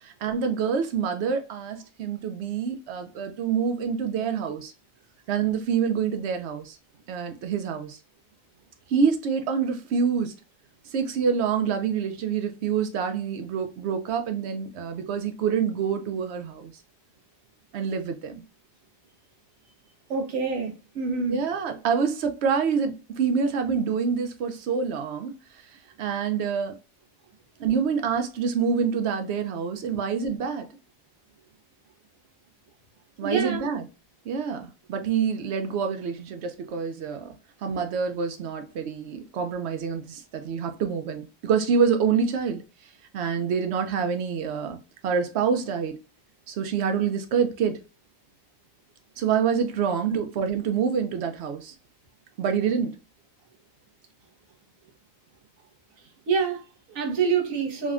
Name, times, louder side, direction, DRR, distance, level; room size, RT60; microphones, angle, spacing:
voice 1, 0.0-4.7 5.3-6.8 7.1-8.0 8.9-10.3 10.9-16.7 17.7-18.4 21.3-25.3 26.0-26.8 27.6-30.7 33.2-33.8 34.3-37.3 37.6-42.6 43.1-44.8 45.0-46.0 46.5-47.8 49.2-51.7 52.4-53.0, right 6 dB, 65° right, 0.7 m, -26 dB
voice 2, 20.1-21.4 33.2-33.6 50.1-50.2 56.3-57.9, right 5 dB, 90° right, 1.2 m, -26 dB
3.4 x 2.1 x 2.4 m
omnidirectional pair, 1.4 m